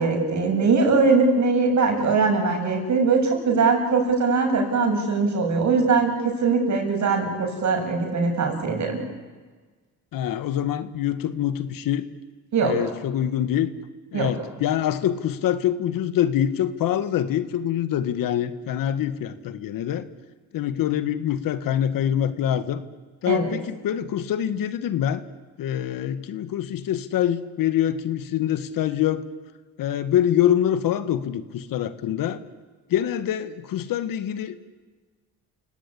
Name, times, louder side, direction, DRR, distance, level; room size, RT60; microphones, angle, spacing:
voice 1, 0.0-9.0 12.5-12.7 14.1-14.3 23.3-23.5, right 4 dB, 55° right, 3 dB, 7.8 m, -21 dB
voice 2, 10.1-12.0 12.6-13.7 14.1-20.1 20.5-22.8 23.2-25.2 25.6-29.3 29.8-32.4 32.9-34.6, left 10 dB, 70° left, 12 dB, 1.8 m, -25 dB
29.0 x 17.5 x 10.0 m, 1.4 s
cardioid pair, 90°, 35 cm